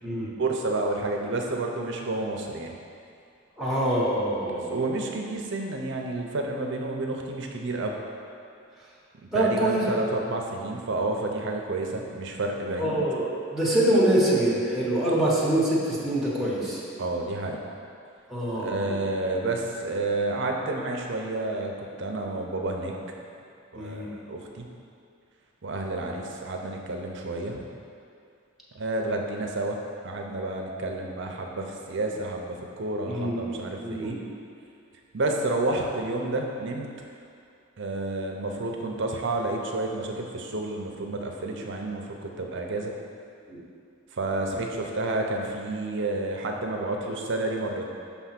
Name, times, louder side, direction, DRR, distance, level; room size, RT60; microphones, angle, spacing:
voice 1, 0.4-2.8 4.5-8.0 9.3-12.9 17.0-17.6 18.5-21.7 22.0-22.9 23.7-24.7 25.6-27.6 28.7-29.8 30.0-34.2 35.1-36.9 37.8-42.9 44.1-47.9, right 2 dB, 65° right, 1 dB, 0.7 m, -30 dB
voice 2, 3.6-4.8 9.3-9.8 12.8-16.8 18.3-19.0 23.7-24.1 33.1-34.2 43.5-43.6, right 1 dB, ahead, -8 dB, 1.0 m, -25 dB
5.7 x 3.5 x 5.8 m, 2.4 s
head